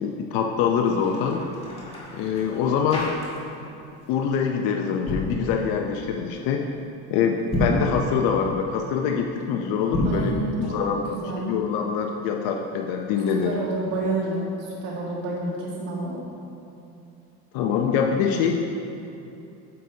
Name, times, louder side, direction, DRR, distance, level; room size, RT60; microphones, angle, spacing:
voice 1, 0.0-1.4 2.1-3.1 4.1-6.7 7.1-10.3 10.6-11.0 11.4-13.6 17.5-18.6, left 7 dB, 75° left, 2 dB, 0.7 m, -24 dB
sound 1, 0.8-3.7 4.0-4.3 4.9-5.4 7.4-7.9 9.8-10.3, equal, 15° left, 1.8 m, -30 dB
voice 2, 10.1-10.8 11.1-11.5 13.4-16.2, right 2 dB, 80° right, -4 dB, 1.9 m, -29 dB
9.5 x 7.7 x 2.8 m, 2.8 s
cardioid pair, 125°, 36 cm